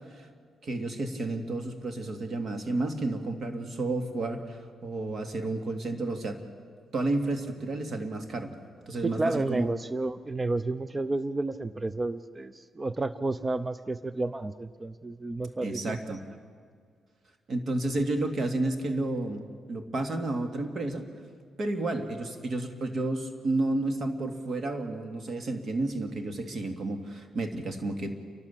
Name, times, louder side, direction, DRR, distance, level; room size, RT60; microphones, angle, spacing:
voice 1, 0.6-6.4 6.9-8.5 8.9-9.7 15.6-16.2 17.5-19.4 19.7-21.1 21.6-28.1, right 2 dB, 55° right, 6 dB, 2.5 m, -31 dB
voice 2, 9.0-16.2, right 2 dB, 25° right, 15 dB, 0.6 m, -31 dB
29.5 x 12.0 x 8.6 m, 2.1 s
cardioid pair, 75°, 0 cm